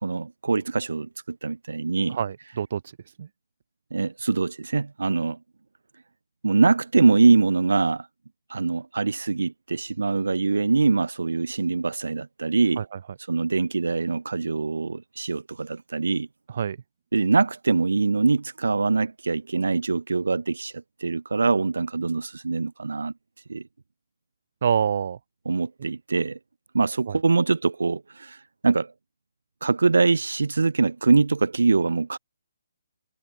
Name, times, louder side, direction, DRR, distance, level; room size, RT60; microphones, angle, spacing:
voice 1, 0.0-2.2 3.9-5.4 6.4-8.1 8.5-12.8 13.3-16.3 17.1-23.1 23.5-23.6 25.4-26.4 26.7-28.9 29.6-32.2, right 4 dB, 80° right, 1.4 m, -23 dB
voice 2, 2.1-2.8 3.2-3.3 12.8-13.0 16.5-16.8 24.6-25.2 27.1-27.2, right 7 dB, 55° right, 3.1 m, -26 dB
figure-of-eight pair, 145°, 0 cm